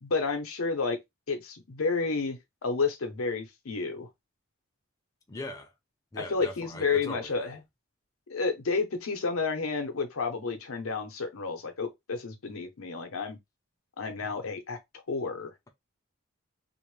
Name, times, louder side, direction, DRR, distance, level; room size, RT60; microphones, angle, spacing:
voice 1, 0.0-1.0 1.3-4.1 6.1-7.6 8.3-13.4 14.0-14.8 15.1-15.5, left 4 dB, 85° left, 0.7 m, -31 dB
voice 2, 5.3-5.7 6.1-7.5, left 2 dB, 15° left, 0.4 m, -40 dB
2.5 x 2.1 x 3.1 m
head